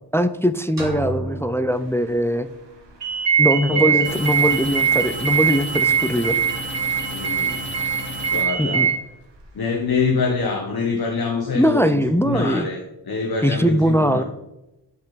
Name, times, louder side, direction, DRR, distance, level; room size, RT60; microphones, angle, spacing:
voice 1, 0.1-2.5 3.4-6.4 8.6-8.9 11.5-12.7 13.4-14.2, equal, 5° left, 11 dB, 0.4 m, -21 dB
sound 1, 0.8-2.7, right 2 dB, 55° right, 2.4 m, -33 dB
sound 2, 3.0-8.9, right 7 dB, 90° right, 1.4 m, -22 dB
voice 2, 3.7-4.1 7.1-7.6 8.3-8.9 9.5-14.2, left 4 dB, 60° left, 1 dB, 1.1 m, -25 dB
sound 3, 4.0-8.4, left 1 dB, 25° left, 1.7 m, -33 dB
8.7 x 5.5 x 4.0 m, 0.93 s
wide cardioid pair, 80°, 41 cm